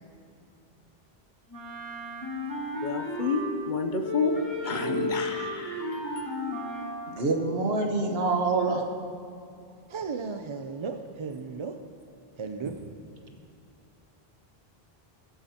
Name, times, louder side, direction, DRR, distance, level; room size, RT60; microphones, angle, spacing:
Wind instrument woodwind instrument, 1.5-3.7 4.0-7.1, equal, 20° left, 2.3 m, -33 dB
voice 1, 2.7-4.4 4.6-6.3, left 5 dB, 55° left, 6 dB, 0.9 m, -30 dB
voice 2, 7.2-8.8, right 3 dB, 75° right, 2 dB, 1.5 m, -26 dB
voice 3, 9.9-11.8 12.4-12.8, right 5 dB, 45° right, 6 dB, 0.4 m, -35 dB
20.5 x 9.8 x 2.9 m, 2.6 s
omnidirectional pair, 1.1 m